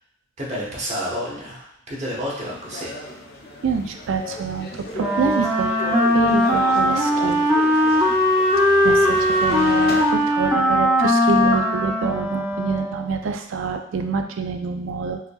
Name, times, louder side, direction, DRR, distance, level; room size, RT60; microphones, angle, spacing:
voice 1, 0.4-2.9, equal, 35° right, -5 dB, 1.2 m, -30 dB
sound 1, 2.4-10.1, left 1 dB, 55° left, 0.6 m, -35 dB
voice 2, 3.6-7.6 8.8-15.2, right 5 dB, 75° right, 6 dB, 0.4 m, -26 dB
Wind instrument woodwind instrument, 4.9-13.2, left 1 dB, 10° right, 0.5 m, -19 dB
4.8 x 2.8 x 2.3 m, 0.69 s
head